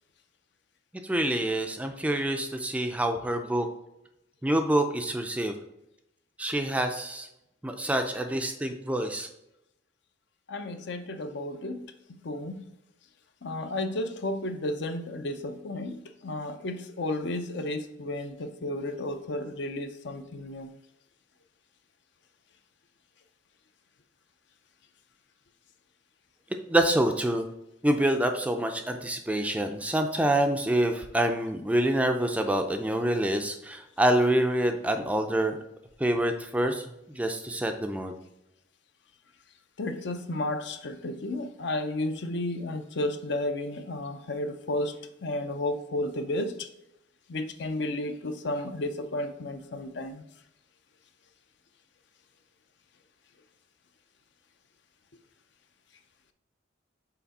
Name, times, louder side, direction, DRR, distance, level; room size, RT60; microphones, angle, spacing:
voice 1, 1.0-3.7 4.4-5.6 6.4-7.3 7.6-9.3 26.7-27.5 27.8-35.6 36.0-38.1, right 1 dB, 5° right, 0.4 m, -26 dB
voice 2, 10.5-12.6 13.4-20.7 39.8-46.7 47.3-50.2, left 1 dB, 60° left, 0.6 m, -33 dB
5.8 x 4.2 x 4.1 m
head